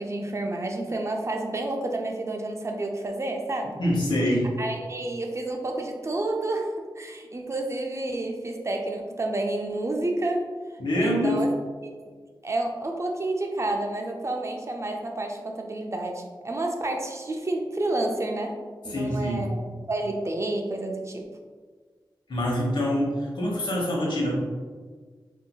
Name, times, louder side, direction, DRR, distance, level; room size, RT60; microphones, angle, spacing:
voice 1, 0.0-3.8 4.6-10.5 11.0-11.5 12.0-12.1 12.4-18.6 18.8-19.6 19.9-21.2, right 2 dB, 35° right, 2 dB, 0.4 m, -30 dB
voice 2, 3.8-4.5 10.8-11.4 18.8-19.5 22.3-24.3, equal, 70° left, -3 dB, 1.0 m, -25 dB
4.2 x 2.7 x 2.3 m, 1.5 s
wide cardioid pair, 70°, 8 cm